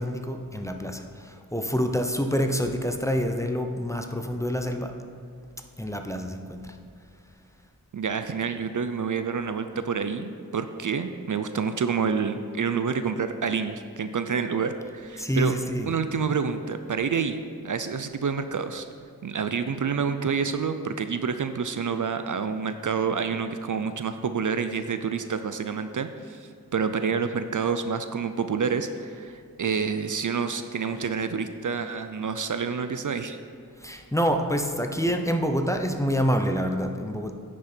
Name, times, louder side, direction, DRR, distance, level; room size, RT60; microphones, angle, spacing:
voice 1, 0.0-4.9 5.8-6.8 15.2-15.9 33.8-37.3, equal, 10° left, 5 dB, 0.7 m, -27 dB
voice 2, 7.9-15.5 15.9-17.4 17.6-18.9 19.2-33.4, right 6 dB, 55° right, 9 dB, 0.5 m, -28 dB
9.7 x 6.2 x 4.4 m, 2.3 s
wide cardioid pair, 65°, 38 cm